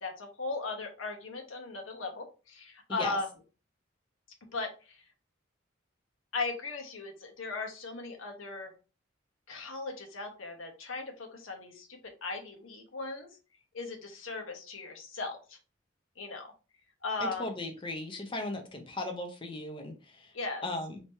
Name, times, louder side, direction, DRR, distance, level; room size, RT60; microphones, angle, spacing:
voice 1, 0.0-3.3 4.5-5.0 6.3-8.7 9.5-13.3 13.7-15.6 16.2-16.5 17.0-17.5 20.3-20.6, left 3 dB, 90° left, 3 dB, 1.0 m, -37 dB
voice 2, 17.2-20.3 20.6-21.0, left 2 dB, 25° left, 3 dB, 0.7 m, -37 dB
3.0 x 2.8 x 4.5 m, 0.33 s
head